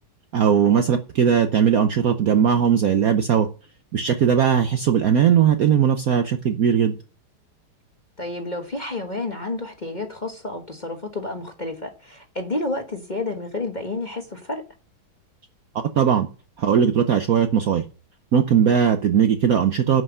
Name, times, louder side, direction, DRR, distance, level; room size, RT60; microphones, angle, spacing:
voice 1, 0.3-3.5 3.9-6.9 16.0-16.3 16.6-17.8 18.3-20.0, right 8 dB, 60° right, 0.9 m, -19 dB
voice 2, 8.2-14.6, left 2 dB, 25° left, 1.1 m, -30 dB
11.0 x 5.7 x 7.8 m
omnidirectional pair, 2.3 m